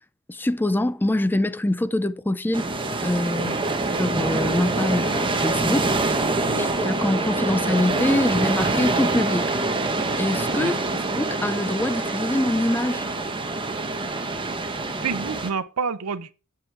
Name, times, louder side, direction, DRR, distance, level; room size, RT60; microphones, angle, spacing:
voice 1, 0.3-2.7 3.0-3.6 4.0-5.9 6.6-9.5 10.2-10.8 11.1-13.1, left 1 dB, 10° left, 0.4 m, -24 dB
sound 1, 2.5-15.5, right 2 dB, 25° right, 1.1 m, -25 dB
voice 2, 15.0-16.3, right 5 dB, 90° right, 0.7 m, -29 dB
7.7 x 7.7 x 4.7 m
head